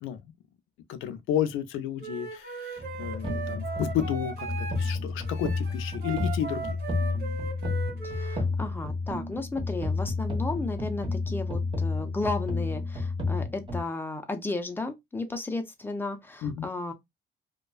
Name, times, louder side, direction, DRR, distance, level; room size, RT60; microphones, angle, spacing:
voice 1, 0.9-6.8 16.4-16.7, left 10 dB, 85° left, 0.4 m, -32 dB
Wind instrument woodwind instrument, 2.0-4.9 5.2-8.4, right 6 dB, 55° right, 1.2 m, -38 dB
sound 1, 2.8-13.8, left 3 dB, 25° right, 1.1 m, -31 dB
voice 2, 8.0-16.9, left 2 dB, 10° left, 0.6 m, -34 dB
2.4 x 2.2 x 2.3 m
cardioid pair, 90°, 20 cm